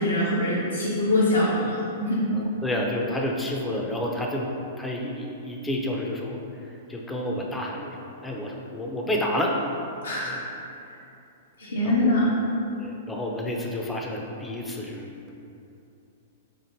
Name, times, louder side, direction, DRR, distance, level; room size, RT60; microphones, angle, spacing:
voice 1, 0.0-2.2 10.0-10.4 10.9-11.0 11.6-12.4, left 1 dB, 85° left, -7 dB, 0.5 m, -24 dB
voice 2, 2.3-6.4 6.9-9.6 10.3-10.4 11.8-12.3 12.8-15.3, left 1 dB, 10° left, -1 dB, 0.4 m, -30 dB
4.3 x 2.5 x 2.7 m, 2.7 s
hypercardioid pair, 110°, 0 cm